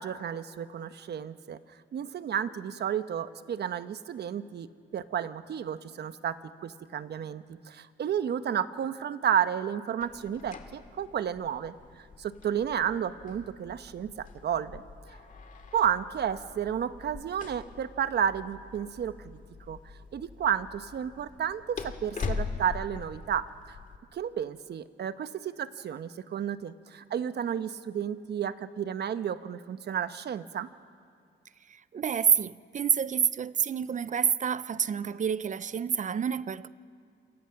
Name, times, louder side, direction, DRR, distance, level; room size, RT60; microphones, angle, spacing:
voice 1, 0.0-1.6 1.9-4.7 4.9-11.7 12.2-14.8 15.7-19.4 19.7-19.8 20.1-23.8 24.1-30.7, right 9 dB, 55° right, 1.0 m, -32 dB
sound 1, 10.0-24.0, left 5 dB, 40° left, 2.3 m, -42 dB
voice 2, 31.7-36.7, right 7 dB, 40° right, 0.7 m, -28 dB
28.0 x 27.5 x 5.9 m
cardioid pair, 90°, 20 cm